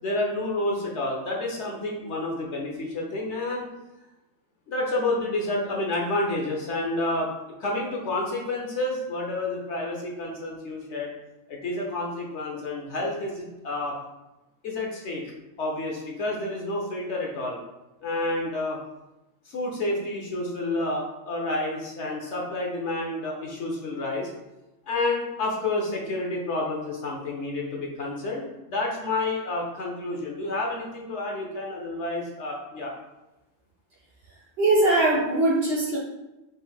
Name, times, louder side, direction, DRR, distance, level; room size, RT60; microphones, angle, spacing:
voice 1, 0.0-3.7 4.7-7.3 7.6-11.1 11.5-14.0 14.6-15.3 15.6-17.6 18.0-18.8 19.5-24.3 24.9-32.9, left 2 dB, 60° left, -1 dB, 0.9 m, -29 dB
voice 2, 34.6-36.0, right 2 dB, 50° right, -5 dB, 0.9 m, -21 dB
3.8 x 2.5 x 4.1 m, 1.0 s
omnidirectional pair, 1.5 m